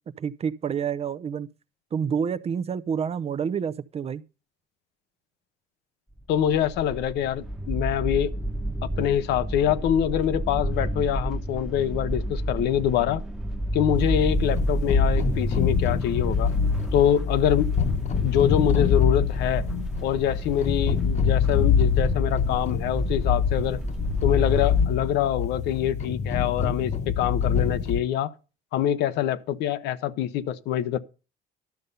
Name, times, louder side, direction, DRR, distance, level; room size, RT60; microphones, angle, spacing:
voice 1, 0.2-1.5 1.9-4.2, right 7 dB, 35° right, 0.6 m, -28 dB
sound 1, 6.2-24.9, right 1 dB, 5° right, 1.0 m, -30 dB
voice 2, 6.3-8.3 9.0-13.2 13.7-16.5 16.9-17.7 18.2-19.7 20.0-23.8 24.2-28.3 28.7-31.0, left 10 dB, 80° left, 0.8 m, -25 dB
sound 2, 13.9-28.0, left 7 dB, 45° left, 1.0 m, -25 dB
12.0 x 6.7 x 5.4 m
cardioid pair, 110°, 17 cm